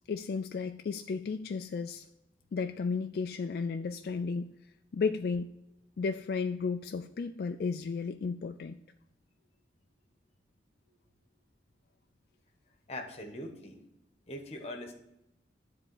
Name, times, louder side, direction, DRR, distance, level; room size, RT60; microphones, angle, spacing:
voice 1, 0.1-2.0 2.5-4.5 4.9-5.5 6.0-8.8, left 5 dB, 55° left, 7 dB, 0.3 m, -33 dB
voice 2, 12.9-13.8 14.3-14.9, left 1 dB, 35° left, 3 dB, 1.1 m, -41 dB
9.8 x 3.6 x 6.8 m, 0.86 s
head